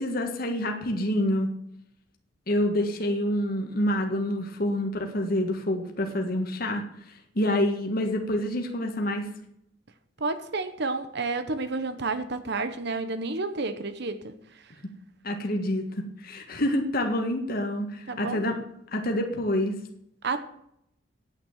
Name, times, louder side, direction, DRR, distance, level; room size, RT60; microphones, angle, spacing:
voice 1, 0.0-1.5 2.5-6.8 7.3-9.3 15.2-18.6 18.9-19.7, left 1 dB, 50° left, 3 dB, 1.7 m, -27 dB
voice 2, 10.2-14.3 18.1-18.4 20.2-20.4, right 3 dB, 60° right, 10 dB, 0.9 m, -30 dB
9.4 x 9.0 x 7.3 m, 0.75 s
head